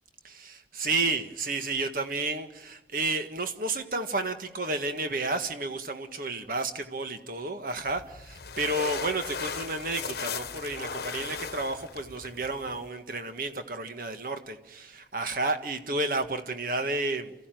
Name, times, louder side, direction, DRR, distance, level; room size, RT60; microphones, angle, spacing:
voice 1, 0.2-17.5, right 2 dB, 50° right, 1.7 m, -31 dB
sound 1, 7.9-12.9, left 5 dB, 60° left, 1.1 m, -37 dB
28.5 x 15.0 x 9.3 m
head